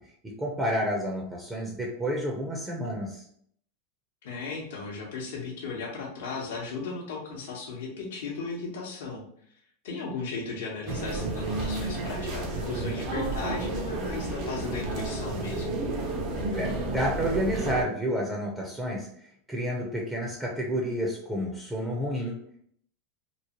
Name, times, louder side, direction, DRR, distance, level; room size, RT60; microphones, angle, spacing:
voice 1, 0.2-3.2 16.5-19.1 19.5-22.4, equal, 10° right, -2 dB, 0.6 m, -30 dB
voice 2, 4.2-9.2 9.8-15.7, left 4 dB, 75° left, -2 dB, 0.8 m, -36 dB
sound 1, 10.9-17.8, right 2 dB, 50° right, 0.7 m, -31 dB
2.9 x 2.0 x 2.9 m, 0.65 s
supercardioid pair, 120°, 0 cm